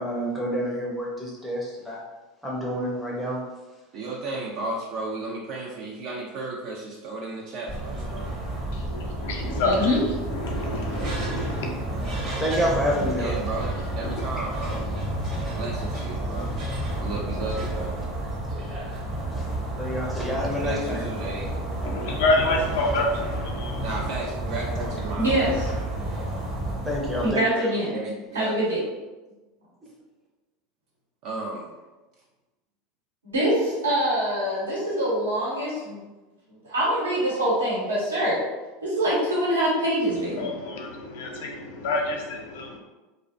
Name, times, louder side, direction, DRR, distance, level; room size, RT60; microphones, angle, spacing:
voice 1, 0.0-2.0 2.4-3.4 12.4-13.3 19.8-21.0 26.9-27.4, equal, ahead, -4 dB, 0.5 m, -28 dB
voice 2, 3.9-8.3 13.2-14.8 15.5-16.5 16.9-17.9 20.6-21.5 23.8-25.5 27.9-28.6 31.2-31.7, right 3 dB, 55° right, -2 dB, 0.4 m, -34 dB
sound 1, 7.7-27.3, right 1 dB, 40° right, 0.7 m, -30 dB
voice 3, 8.7-9.9 10.3-11.7 14.0-14.2 21.8-23.9 40.4-42.8, left 2 dB, 65° left, 1 dB, 0.5 m, -28 dB
voice 4, 9.6-10.0 25.2-25.7 27.2-28.0 28.3-28.8 33.2-36.1 36.6-38.4 38.8-40.5, equal, 90° right, -6 dB, 0.9 m, -24 dB
2.4 x 2.0 x 2.5 m, 1.2 s
hypercardioid pair, 85°, 0 cm